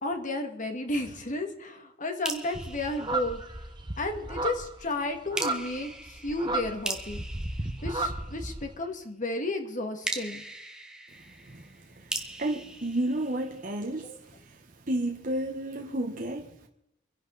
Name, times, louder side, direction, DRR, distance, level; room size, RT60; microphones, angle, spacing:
voice 1, 0.0-3.4 4.0-7.2 7.8-10.4 14.0-14.2 16.1-16.2, left 2 dB, 40° left, 2.2 m, -33 dB
sound 1, 2.2-4.0 5.3-8.7 10.0-13.9, right 1 dB, 5° right, 1.4 m, -39 dB
sound 2, 2.5-8.7, right 2 dB, 25° right, 1.3 m, -34 dB
voice 2, 12.4-14.1 14.9-16.7, right 1 dB, 45° right, 1.3 m, -31 dB
26.0 x 11.0 x 4.1 m
head